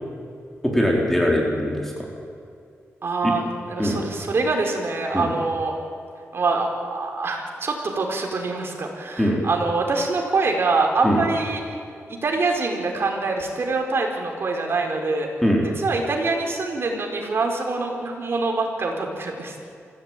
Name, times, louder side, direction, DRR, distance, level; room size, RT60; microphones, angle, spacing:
voice 1, 0.6-1.9 3.2-3.4 3.8-4.0 5.1-5.3 9.2-9.4 11.0-11.2 15.4-15.7, equal, 5° left, -2 dB, 4.7 m, -21 dB
voice 2, 3.0-5.8 6.3-11.6 12.1-15.3 15.8-19.5, right 3 dB, 55° right, 1 dB, 4.8 m, -25 dB
25.0 x 16.5 x 9.4 m, 2.4 s
wide cardioid pair, 95°, 5 cm